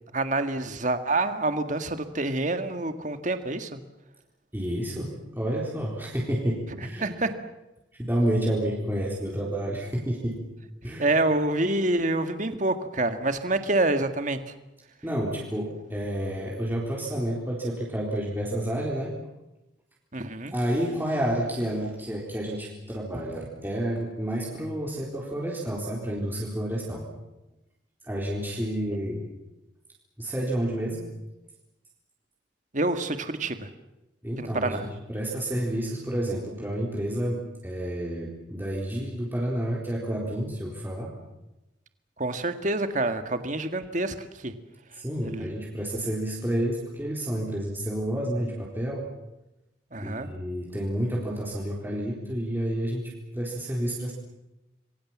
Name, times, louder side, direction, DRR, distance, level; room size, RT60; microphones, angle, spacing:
voice 1, 0.1-3.8 7.0-7.3 11.0-14.5 20.1-20.5 32.7-33.7 34.4-34.9 42.2-44.5 45.2-45.5 49.9-50.3, right 2 dB, 40° right, 8 dB, 1.8 m, -27 dB
voice 2, 4.5-7.2 8.0-10.4 10.8-11.1 15.0-19.2 20.5-27.1 28.0-29.3 30.2-31.1 34.2-41.2 44.9-49.0 50.0-54.1, right 1 dB, 10° right, -3 dB, 4.1 m, -30 dB
27.5 x 22.5 x 7.5 m, 0.97 s
head